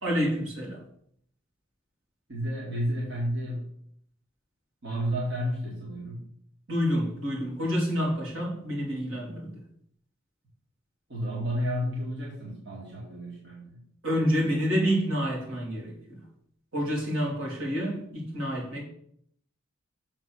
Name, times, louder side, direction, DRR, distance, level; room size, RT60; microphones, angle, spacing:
voice 1, 0.0-0.8 6.7-9.6 14.0-16.2 16.7-18.8, equal, 90° right, -3 dB, 3.2 m, -28 dB
voice 2, 2.3-3.6 4.8-6.2 11.1-13.8, equal, 60° right, -5 dB, 2.4 m, -31 dB
7.1 x 4.4 x 6.4 m, 0.67 s
head